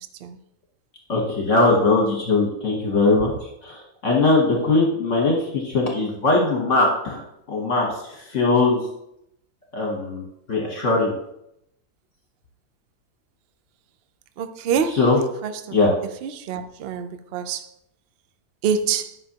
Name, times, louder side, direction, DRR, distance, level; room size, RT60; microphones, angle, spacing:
voice 1, 1.1-3.3 3.6-7.2 7.5-8.8 9.7-11.1 15.0-15.2 15.7-15.9, left 3 dB, 50° left, 1.3 m, -20 dB
voice 2, 14.4-15.1 15.4-15.9 16.2-17.7 18.6-19.2, right 7 dB, 85° right, 0.5 m, -26 dB
10.5 x 5.7 x 2.9 m
omnidirectional pair, 1.8 m